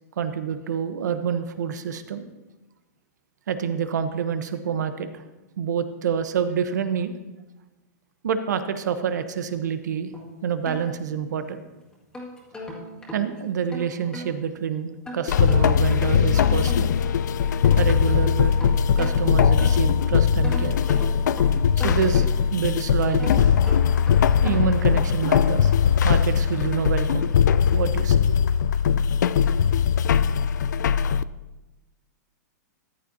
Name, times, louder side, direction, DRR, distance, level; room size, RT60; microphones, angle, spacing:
voice 1, 0.2-2.2 3.5-5.2 5.6-7.1 8.2-10.1 10.4-11.7 13.1-16.9 17.8-18.6 19.0-20.8 21.8-23.5 24.4-25.7 26.0-27.4 27.7-28.2, right 7 dB, 80° right, 10 dB, 1.0 m, -27 dB
sound 1, 10.1-11.5 11.9-14.3 15.0-17.1 17.4-20.0 20.4-22.6 23.1-24.8, left 1 dB, 5° left, 2.0 m, -39 dB
sound 2, 15.3-31.2, left 7 dB, 85° left, 0.4 m, -20 dB
14.0 x 10.5 x 2.8 m, 1.1 s
hypercardioid pair, 155°, 9 cm